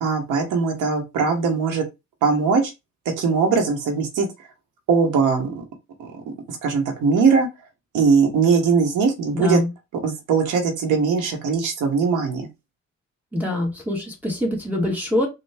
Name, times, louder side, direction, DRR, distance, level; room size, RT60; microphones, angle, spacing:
voice 1, 0.0-1.8 2.2-2.7 3.2-4.3 4.9-5.6 6.0-7.5 7.9-9.6 10.0-12.5, right 5 dB, 85° right, 1.1 m, -20 dB
voice 2, 9.3-9.7 13.3-15.3, left 1 dB, 5° right, 1.4 m, -24 dB
3.2 x 2.3 x 3.4 m
cardioid pair, 90°, 30 cm